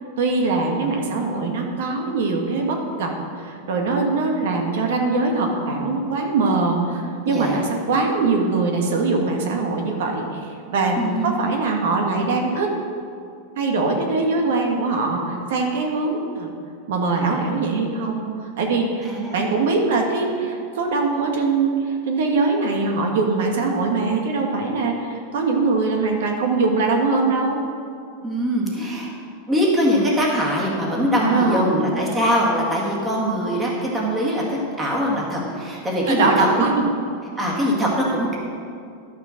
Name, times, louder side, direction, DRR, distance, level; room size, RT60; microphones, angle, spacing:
voice 1, 0.2-11.0 11.2-12.7 13.6-16.5 16.9-27.6 31.2-31.7 36.0-36.9, right 3 dB, 70° right, 2 dB, 1.6 m, -22 dB
voice 2, 7.3-7.6 11.0-11.5 19.1-19.4 28.2-29.1 29.5-36.5 36.7-36.8 37.4-38.4, equal, 10° right, -3 dB, 1.9 m, -22 dB
11.5 x 6.6 x 6.5 m, 2.4 s
supercardioid pair, 160°, 0 cm